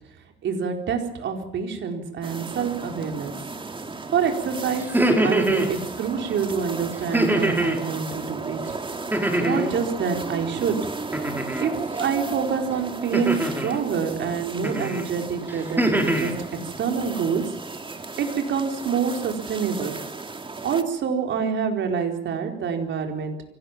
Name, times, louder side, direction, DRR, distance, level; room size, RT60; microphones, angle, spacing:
voice 1, 0.4-3.3 4.1-5.0 5.2-8.6 9.4-10.9 11.6-16.3 16.8-17.5 18.2-20.0 20.6-23.4, right 6 dB, 70° right, 4 dB, 4.5 m, -26 dB
sound 1, 2.2-20.8, right 3 dB, 25° right, 2.2 m, -35 dB
sound 2, 4.8-5.7 7.1-7.8 9.1-9.8 11.1-11.7 13.1-13.8 14.6-15.0 15.5-16.3, right 1 dB, 10° right, 4.6 m, -23 dB
24.5 x 18.0 x 7.5 m, 0.81 s
cardioid pair, 90°, 20 cm